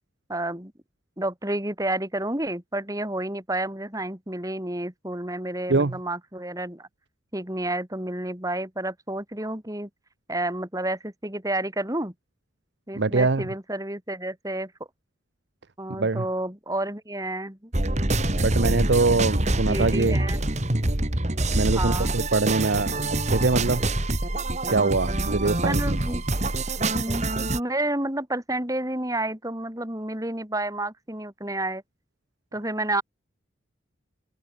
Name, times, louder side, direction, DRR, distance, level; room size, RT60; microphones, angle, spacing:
voice 1, 0.3-0.7 1.2-6.9 7.3-9.9 10.3-12.1 12.9-14.7 15.8-17.7 19.5-20.4 21.7-22.1 25.6-26.2 26.9-27.3 27.5-31.8 32.5-33.0, right 1 dB, 15° right, 3.2 m, -30 dB
voice 2, 12.9-13.5 16.0-16.2 18.4-20.2 21.5-23.8 24.7-26.0, right 3 dB, 65° right, 0.8 m, -23 dB
sound 1, 17.7-27.6, right 2 dB, 35° right, 2.2 m, -25 dB
open air
head